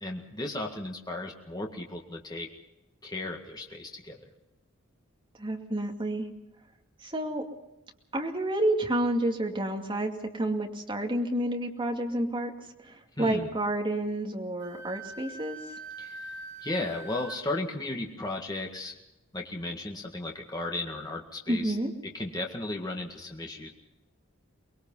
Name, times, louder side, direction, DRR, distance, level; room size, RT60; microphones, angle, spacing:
voice 1, 0.0-2.5 3.0-4.2 13.2-13.5 16.0-16.4 16.6-19.0 19.3-21.8 22.1-23.7, left 2 dB, 20° left, 1 dB, 1.9 m, -35 dB
voice 2, 5.4-6.3 7.0-7.4 8.1-12.5 12.8-15.6 21.5-21.9, right 1 dB, 25° right, 1 dB, 2.4 m, -29 dB
Wind instrument woodwind instrument, 14.6-17.4, right 2 dB, 60° right, 3.8 m, -43 dB
24.5 x 21.0 x 5.6 m, 0.92 s
head